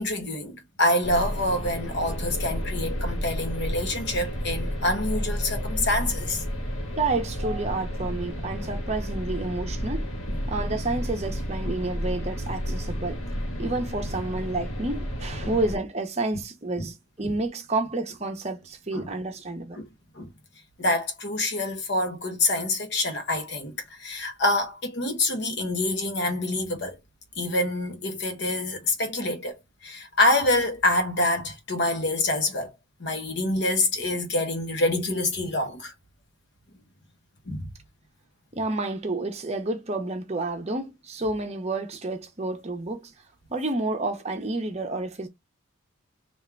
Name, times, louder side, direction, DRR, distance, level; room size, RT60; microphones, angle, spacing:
voice 1, 0.0-6.4 13.6-13.7 15.4-15.5 16.8-16.9 17.2-17.3 18.9-19.1 19.8-19.9 20.1-20.3 20.8-27.0 27.4-32.7 33.0-35.9 37.5-37.7, left 2 dB, 55° left, 0.9 m, -26 dB
sound 1, 1.0-15.8, equal, 85° left, 1.3 m, -31 dB
voice 2, 6.9-10.1 10.5-13.2 13.6-19.8 38.5-43.1 43.5-45.3, right 2 dB, 30° right, 0.8 m, -30 dB
3.6 x 2.5 x 4.5 m
head